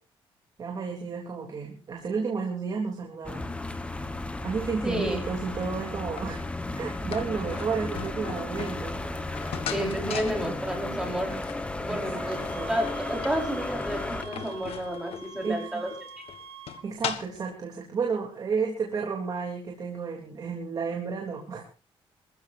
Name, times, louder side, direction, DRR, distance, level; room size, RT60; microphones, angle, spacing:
voice 1, 0.6-3.5 4.4-6.4 6.8-9.0 11.9-12.8 15.4-15.8 16.8-21.6, right 5 dB, 40° right, 0 dB, 3.4 m, -32 dB
sound 1, 3.2-14.2, left 2 dB, 10° left, 1.3 m, -34 dB
sound 2, 4.7-17.5, left 9 dB, 90° left, 1.6 m, -40 dB
voice 2, 4.8-5.2 9.7-11.4 11.9-15.9, equal, 5° right, 0 dB, 5.0 m, -31 dB
sound 3, 12.3-16.8, right 4 dB, 75° right, 2.5 m, -46 dB
25.0 x 15.5 x 2.7 m, 0.34 s
cardioid pair, 155°, 10 cm